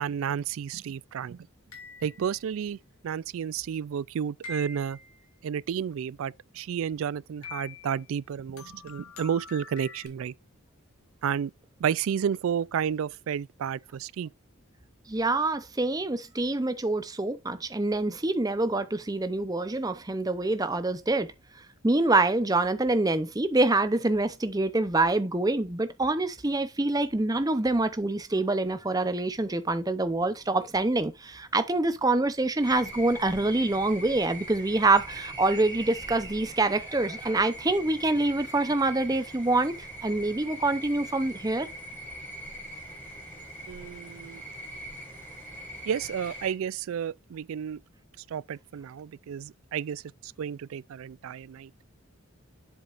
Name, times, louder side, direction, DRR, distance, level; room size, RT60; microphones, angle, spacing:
voice 1, 0.0-1.4 2.0-2.8 3.0-5.0 5.4-10.3 11.2-11.5 11.8-14.3 43.7-44.4 45.9-47.8 48.3-51.7, right 8 dB, 65° right, 0.3 m, -31 dB
sound 1, 1.7-2.5 4.4-5.2 7.4-8.0 8.6-10.1, left 3 dB, 75° left, 2.7 m, -44 dB
voice 2, 15.1-21.3 21.8-41.7, right 2 dB, 15° right, 0.6 m, -26 dB
sound 2, 32.6-46.5, right 1 dB, 10° left, 4.3 m, -42 dB
7.9 x 7.4 x 2.5 m
head